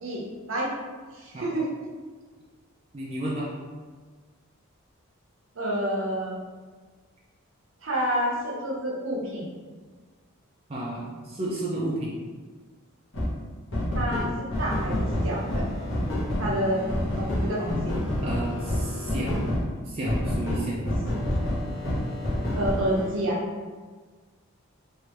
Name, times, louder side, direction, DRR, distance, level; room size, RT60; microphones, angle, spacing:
voice 1, 0.0-0.7 1.1-1.7 5.6-6.4 7.8-9.5 14.0-15.6 16.4-16.8 17.2-18.0 22.5-23.4, right 1 dB, 65° right, -3 dB, 0.7 m, -28 dB
voice 2, 2.9-3.5 10.7-12.1 18.2-19.4 19.9-21.0, right 1 dB, 25° right, -6 dB, 0.4 m, -32 dB
sound 1, 13.1-13.3 13.7-19.6 20.1-23.1, left 1 dB, 60° left, 0.9 m, -28 dB
3.3 x 2.5 x 2.9 m, 1.4 s
head